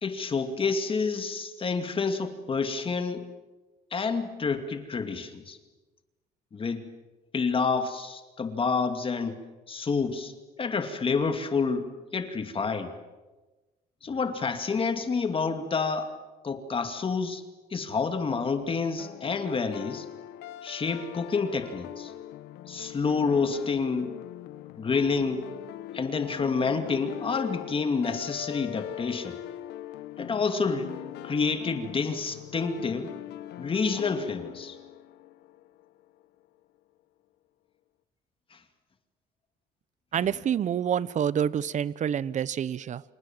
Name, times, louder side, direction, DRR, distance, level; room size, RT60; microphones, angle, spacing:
voice 1, 0.0-3.2 3.9-5.6 6.5-6.8 7.3-9.4 9.7-10.3 10.6-12.9 14.0-16.1 16.4-17.4 17.7-20.1 20.6-22.1 22.7-24.1 24.8-25.5 25.9-29.4 30.2-30.9 31.2-33.1 33.6-34.8 38.5-38.6, left 4 dB, 30° left, 7 dB, 2.5 m, -28 dB
sound 1, 19.0-35.9, left 13 dB, 85° left, 1.2 m, -41 dB
voice 2, 40.1-43.0, right 9 dB, 45° right, 19 dB, 0.9 m, -27 dB
28.5 x 28.0 x 7.5 m, 1.2 s
cardioid pair, 110°, 17 cm